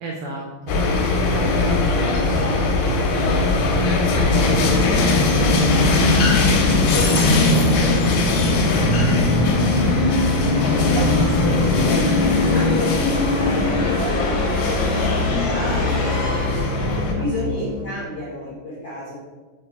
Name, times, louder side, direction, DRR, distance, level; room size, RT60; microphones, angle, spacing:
voice 1, 0.0-9.8 16.8-17.5, right 2 dB, 85° right, -1 dB, 1.8 m, -34 dB
sound 1, 0.7-17.1, left 3 dB, 90° left, 2.6 m, -22 dB
Musical instrument, 4.1-17.8, left 2 dB, 50° left, 2.3 m, -21 dB
voice 2, 10.7-16.7 17.1-19.1, left 1 dB, 75° left, -10 dB, 1.3 m, -31 dB
6.4 x 2.3 x 3.4 m, 1.3 s
omnidirectional pair, 4.3 m